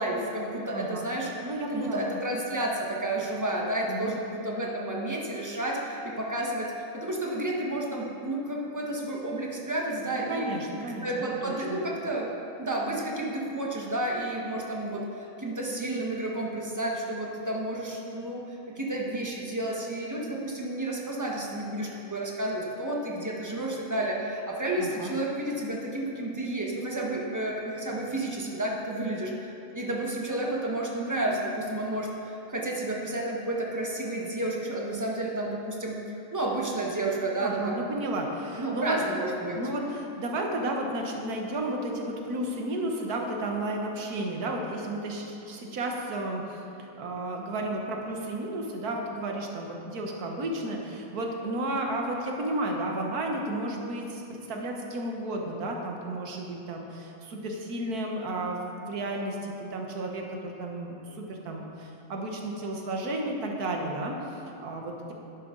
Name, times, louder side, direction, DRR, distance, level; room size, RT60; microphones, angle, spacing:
voice 1, 0.0-10.5 11.0-12.3 12.6-37.8 38.6-39.6, right 1 dB, 15° right, -2 dB, 1.2 m, -31 dB
voice 2, 0.7-1.0 1.4-2.2 3.9-4.1 10.1-11.8 24.8-25.1 37.4-39.0 39.6-65.1, right 1 dB, 90° right, 1 dB, 1.7 m, -33 dB
11.0 x 10.5 x 3.9 m, 2.9 s
omnidirectional pair, 1.6 m